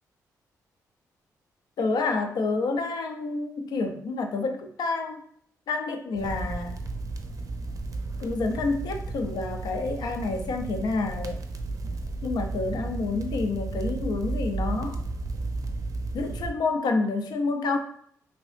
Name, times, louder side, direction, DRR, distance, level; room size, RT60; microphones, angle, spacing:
voice 1, 1.8-5.2 5.7-6.8 8.2-11.4 12.2-15.0 16.1-17.8, left 3 dB, 70° left, 5 dB, 0.5 m, -28 dB
sound 1, 6.1-16.5, right 3 dB, 55° right, 0.5 m, -33 dB
2.9 x 2.8 x 3.2 m, 0.66 s
cardioid pair, 75°, 7 cm